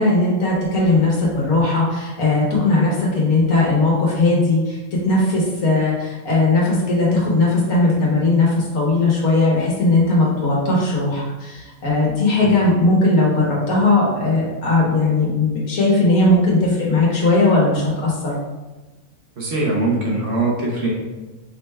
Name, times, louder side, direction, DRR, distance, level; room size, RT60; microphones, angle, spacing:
voice 1, 0.0-4.8 5.1-18.3, left 2 dB, 85° left, -4 dB, 1.6 m, -18 dB
voice 2, 19.4-20.9, right 2 dB, 55° right, -3 dB, 1.0 m, -21 dB
5.1 x 2.2 x 3.3 m, 1.1 s
omnidirectional pair, 1.5 m